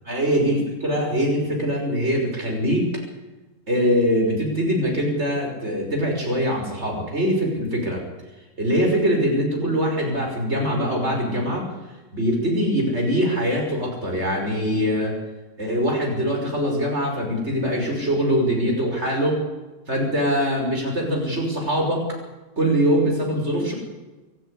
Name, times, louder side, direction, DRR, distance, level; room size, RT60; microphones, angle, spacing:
voice 1, 0.0-2.9 3.7-8.0 8.6-11.6 12.1-15.2 15.6-19.4 19.9-22.1 22.6-23.7, equal, 40° right, 1 dB, 6.1 m, -23 dB
25.5 x 12.5 x 9.9 m, 1.2 s
omnidirectional pair, 1.7 m